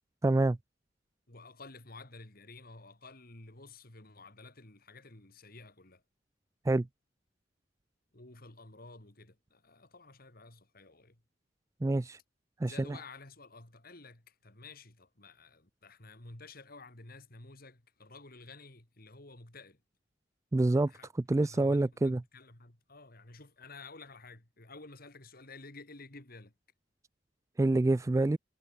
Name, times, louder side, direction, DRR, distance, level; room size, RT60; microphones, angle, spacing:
voice 1, 0.2-0.6 6.7-6.9 11.8-12.2 12.6-13.0 20.5-20.9 21.3-22.2 27.6-28.4, right 2 dB, 15° right, 0.3 m, -26 dB
voice 2, 1.3-6.0 8.1-11.2 12.6-19.8 20.7-21.1 21.4-26.5, left 3 dB, 55° left, 3.2 m, -52 dB
head